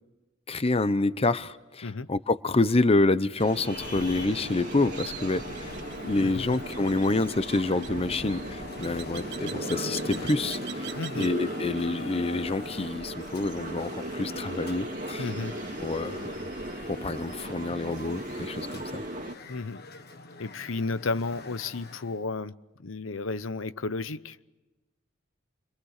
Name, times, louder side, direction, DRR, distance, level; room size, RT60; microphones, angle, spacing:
voice 1, 0.5-5.7 6.0-15.3 15.8-16.3 16.9-19.0, left 2 dB, 30° left, 14 dB, 0.7 m, -27 dB
sound 1, 3.4-19.3, right 1 dB, 40° right, 2.2 m, -37 dB
sound 2, 3.4-11.4, right 6 dB, 60° right, 1.0 m, -45 dB
Traffic noise roadway noise, 3.6-22.2, left 3 dB, 55° left, 1.5 m, -44 dB
voice 2, 6.2-6.6 10.9-11.3 15.2-15.5 19.5-19.8 20.4-22.5 22.8-24.4, left 3 dB, 85° left, 14 dB, 0.8 m, -33 dB
29.5 x 23.0 x 6.6 m, 1.1 s
head